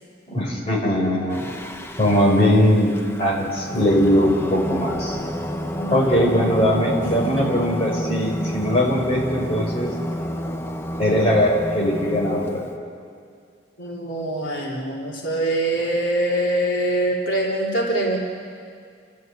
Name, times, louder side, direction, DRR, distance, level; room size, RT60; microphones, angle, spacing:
voice 1, 0.3-1.5 2.0-2.9 3.2-5.2 5.9-10.0 11.0-12.6, equal, 30° left, -3 dB, 4.9 m, -20 dB
Singing, 1.3-12.6, equal, 15° left, 1.0 m, -30 dB
voice 2, 5.8-6.2 7.2-7.5 13.8-18.2, right 1 dB, 75° left, -3 dB, 3.3 m, -24 dB
30.0 x 14.0 x 8.0 m, 2.3 s
head